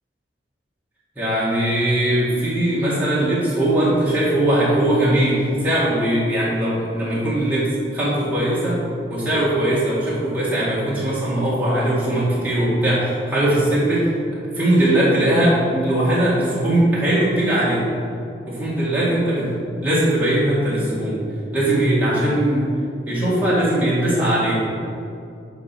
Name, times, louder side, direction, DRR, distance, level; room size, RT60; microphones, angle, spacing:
voice 1, 1.2-8.8 9.1-14.1 14.5-17.8 18.5-21.2 21.5-22.7 23.1-24.5, right 1 dB, 10° right, -8 dB, 2.0 m, -20 dB
9.6 x 4.2 x 6.0 m, 2.5 s
head